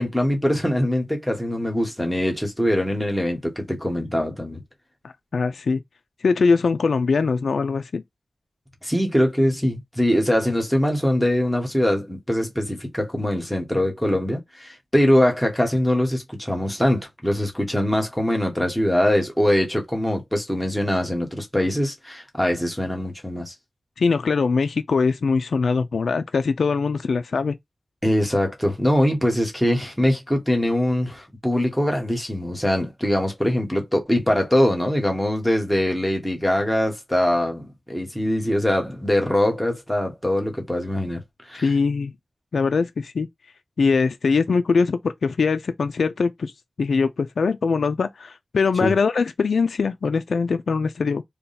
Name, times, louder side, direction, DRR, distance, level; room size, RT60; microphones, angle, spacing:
voice 1, 0.0-4.6 8.8-23.5 28.0-41.2 41.4-41.7 48.8-49.0, left 1 dB, 5° left, 1.2 m, -22 dB
voice 2, 5.3-5.8 6.2-8.0 24.0-27.6 41.6-42.1 42.5-43.3 43.8-46.5 46.8-51.2, left 4 dB, 85° left, 0.3 m, -22 dB
3.4 x 2.3 x 4.1 m
wide cardioid pair, 80°, 0 cm